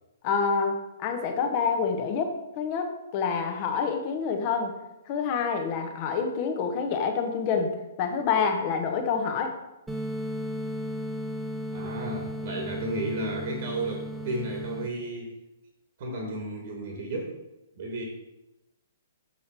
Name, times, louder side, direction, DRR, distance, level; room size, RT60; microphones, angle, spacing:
voice 1, 0.2-4.8 5.1-9.5, left 5 dB, 35° left, 5 dB, 1.0 m, -27 dB
sound 1, 9.9-14.9, equal, 5° right, 0.7 m, -35 dB
voice 2, 11.7-15.3 16.0-17.4 17.8-18.0, right 2 dB, 50° right, 1 dB, 1.3 m, -33 dB
6.6 x 5.5 x 4.4 m, 0.94 s
figure-of-eight pair, 115°, 0 cm